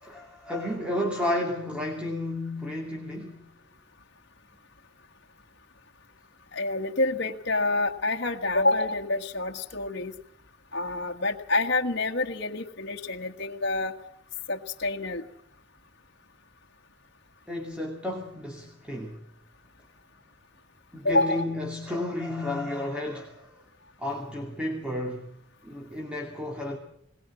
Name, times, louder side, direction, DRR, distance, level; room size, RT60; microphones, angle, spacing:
voice 1, 0.0-3.3 17.5-19.2 20.9-23.5 24.0-25.3 25.6-26.8, left 1 dB, 5° right, 2.5 m, -32 dB
voice 2, 6.5-10.1 10.7-13.9 14.5-15.2 21.0-21.5, left 2 dB, 60° left, 1.5 m, -27 dB
21.5 x 20.0 x 7.4 m
head